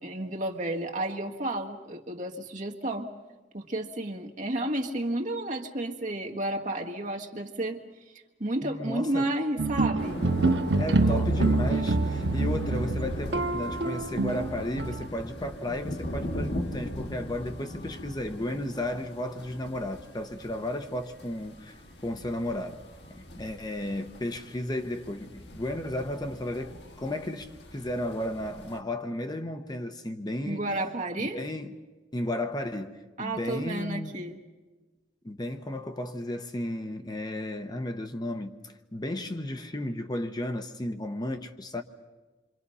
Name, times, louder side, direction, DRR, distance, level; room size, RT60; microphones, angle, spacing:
voice 1, 0.0-3.1 3.5-7.8 8.1-10.2 10.9-11.2 30.4-31.4 33.2-34.4, right 1 dB, 45° right, 1.6 m, -32 dB
voice 2, 8.6-9.3 10.8-22.8 23.1-30.6 31.2-31.7 32.1-34.2 35.2-41.8, left 1 dB, 25° left, 0.9 m, -34 dB
sound 1, 9.6-15.1, right 3 dB, 80° right, 0.8 m, -26 dB
sound 2, 10.0-28.8, left 1 dB, 70° left, 2.1 m, -39 dB
27.5 x 25.0 x 5.6 m
head